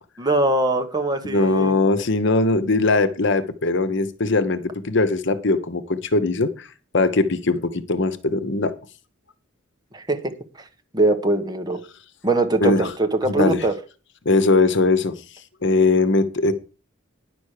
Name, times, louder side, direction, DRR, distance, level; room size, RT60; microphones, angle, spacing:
voice 1, 0.2-1.7 9.9-10.2 10.9-11.8 12.2-13.7, right 2 dB, 20° right, 5 dB, 1.4 m, -21 dB
voice 2, 1.2-6.7 6.9-8.7 12.6-12.9 13.3-13.7 14.2-15.1 15.6-16.5, left 3 dB, 65° left, 13 dB, 1.0 m, -20 dB
10.5 x 6.2 x 6.6 m, 0.35 s
head